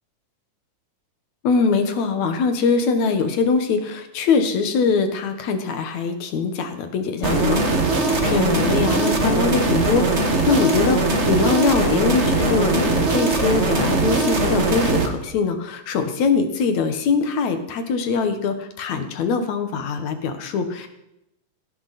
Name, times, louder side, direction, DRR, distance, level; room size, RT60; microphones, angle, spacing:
voice 1, 1.4-20.9, left 5 dB, 65° left, 7 dB, 2.5 m, -22 dB
sound 1, 7.2-15.1, right 3 dB, 40° right, 1.0 m, -20 dB
16.5 x 14.5 x 4.2 m, 0.86 s
omnidirectional pair, 3.9 m